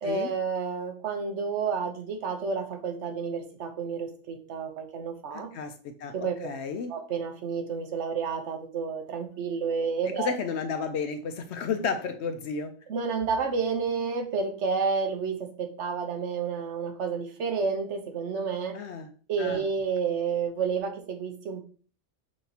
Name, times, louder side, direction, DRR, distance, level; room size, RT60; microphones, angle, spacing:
voice 1, 0.0-5.5 6.1-6.3 6.9-10.3 12.9-18.8 19.3-21.6, right 5 dB, 65° right, 5 dB, 1.0 m, -30 dB
voice 2, 5.3-6.9 10.2-12.7 18.7-19.1 19.4-19.6, left 5 dB, 65° left, 7 dB, 0.8 m, -32 dB
6.0 x 2.9 x 2.8 m, 0.41 s
omnidirectional pair, 1.3 m